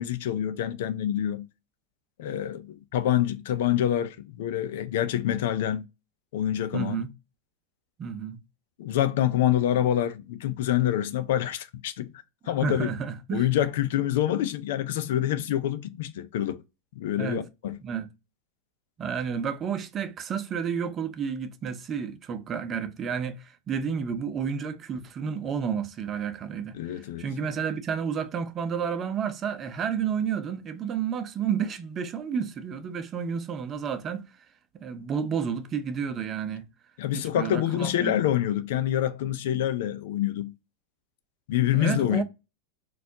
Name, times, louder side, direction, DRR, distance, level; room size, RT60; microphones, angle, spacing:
voice 1, 0.0-1.5 2.2-5.9 6.3-7.0 8.8-12.1 12.5-12.9 13.3-16.6 17.0-17.8 26.7-27.3 37.0-40.5 41.5-42.2, left 11 dB, 75° left, 0.5 m, -26 dB
voice 2, 6.7-7.1 8.0-8.4 12.4-13.5 17.2-17.4 17.8-18.1 19.0-34.3 34.8-36.7 37.1-38.2 41.7-42.2, right 7 dB, 30° right, 0.6 m, -31 dB
4.2 x 2.4 x 2.7 m
supercardioid pair, 120°, 0 cm